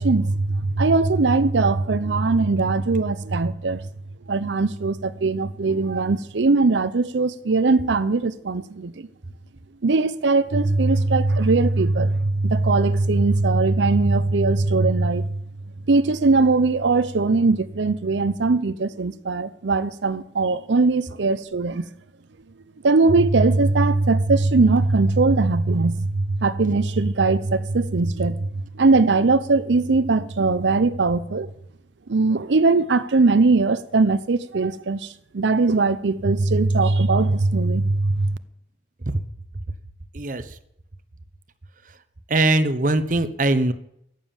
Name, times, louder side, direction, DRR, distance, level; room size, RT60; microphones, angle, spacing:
voice 1, 0.0-3.8 4.3-9.1 9.8-15.3 15.9-21.9 22.8-28.4 28.8-31.5 32.1-35.1 35.3-38.3, right 3 dB, 85° right, 0.7 m, -20 dB
voice 2, 40.1-40.5 42.3-43.7, right 2 dB, 45° right, 1.0 m, -21 dB
14.5 x 9.3 x 7.1 m
head